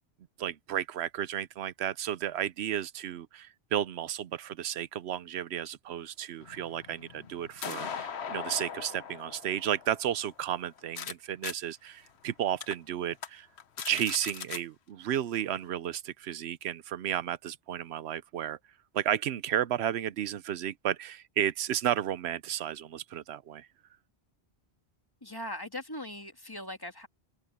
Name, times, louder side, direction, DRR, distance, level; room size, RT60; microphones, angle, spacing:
voice 1, 0.4-13.5 13.9-18.6 18.9-23.7, right 10 dB, 80° right, 0.9 m, -33 dB
sound 1, 6.4-11.1 11.4-11.5 12.1-12.2 12.6-12.7 13.1-13.3 13.6-14.6, left 7 dB, 75° left, 1.2 m, -40 dB
voice 2, 25.2-27.1, left 1 dB, 20° left, 1.6 m, -40 dB
open air
omnidirectional pair, 1.1 m